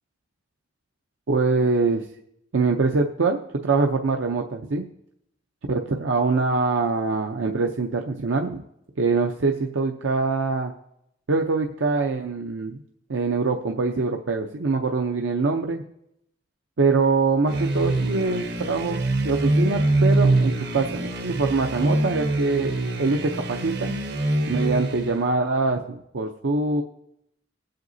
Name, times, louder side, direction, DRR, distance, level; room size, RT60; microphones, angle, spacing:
voice 1, 1.3-2.0 2.5-4.9 5.7-8.6 9.0-10.7 11.3-12.8 13.1-15.8 16.8-24.0 24.5-26.8, right 3 dB, 90° right, 2 dB, 0.6 m, -24 dB
sound 1, 17.5-25.3, right 2 dB, 60° right, 0.9 m, -24 dB
21.5 x 7.8 x 2.7 m, 0.79 s
head